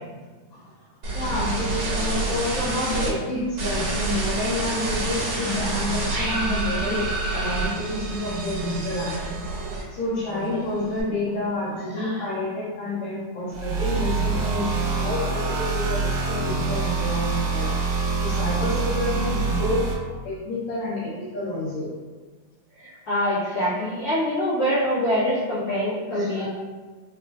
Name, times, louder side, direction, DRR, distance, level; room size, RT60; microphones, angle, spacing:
sound 1, 1.0-3.1 3.6-10.1 10.4-11.0, right 2 dB, 60° right, 1.8 m, -28 dB
voice 1, 1.1-7.0 7.3-9.4 9.9-17.7 18.2-19.9 20.2-21.9 26.1-26.5, left 1 dB, 75° left, -9 dB, 2.0 m, -29 dB
sound 2, 13.5-19.9, right 4 dB, 75° right, 1.7 m, -25 dB
voice 2, 22.8-26.5, equal, 50° left, -13 dB, 1.7 m, -25 dB
4.9 x 2.4 x 2.3 m, 1.3 s
omnidirectional pair, 3.4 m